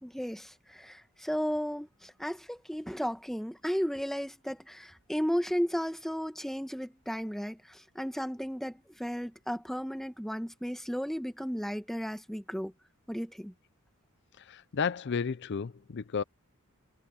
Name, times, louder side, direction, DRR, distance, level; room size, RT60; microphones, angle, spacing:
voice 1, 0.0-12.7 13.1-13.5, equal, ahead, 1.3 m, -34 dB
voice 2, 14.4-16.2, left 6 dB, 55° left, 0.5 m, -32 dB
head